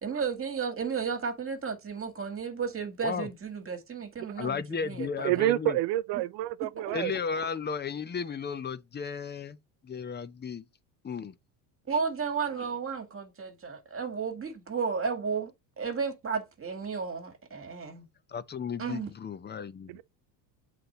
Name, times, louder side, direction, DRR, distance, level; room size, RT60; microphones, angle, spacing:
voice 1, 0.0-5.4 6.8-6.9 11.9-15.5 15.8-18.1 18.8-19.1, right 5 dB, 25° right, 1.8 m, -33 dB
voice 2, 4.4-5.8 6.9-9.6 9.8-10.6 11.0-11.3 18.3-20.0, left 6 dB, 20° left, 0.6 m, -34 dB
voice 3, 5.2-7.1 19.9-20.0, right 15 dB, 55° right, 0.6 m, -28 dB
7.7 x 4.2 x 4.2 m
supercardioid pair, 90°, 50 cm